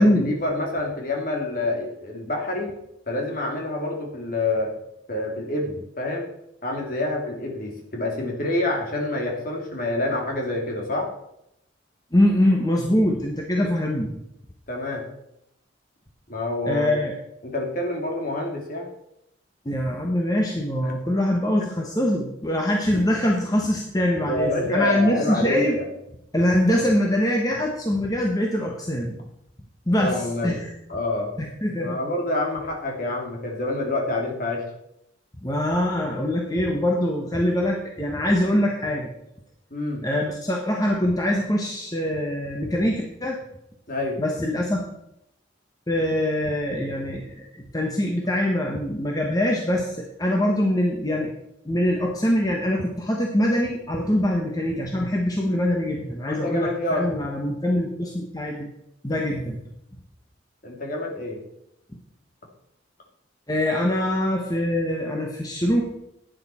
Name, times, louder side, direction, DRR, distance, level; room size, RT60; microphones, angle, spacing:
voice 1, 0.0-2.7 3.1-4.7 5.1-6.3 6.6-11.1 13.6-13.7 14.7-15.0 16.3-17.1 17.4-18.9 20.8-20.9 24.3-25.8 30.0-30.6 30.9-31.3 31.8-34.7 39.7-40.0 43.9-44.2 56.2-57.0 60.6-61.4, left 2 dB, 45° left, 0 dB, 2.6 m, -27 dB
voice 2, 12.1-14.1 16.6-17.1 19.6-25.8 26.3-29.1 29.9-30.7 31.4-32.0 35.4-39.1 40.0-43.4 44.2-44.8 45.9-51.3 51.6-58.7 59.0-59.6 63.5-65.8, left 1 dB, 20° left, 0 dB, 1.2 m, -23 dB
11.5 x 9.3 x 4.4 m, 0.80 s
head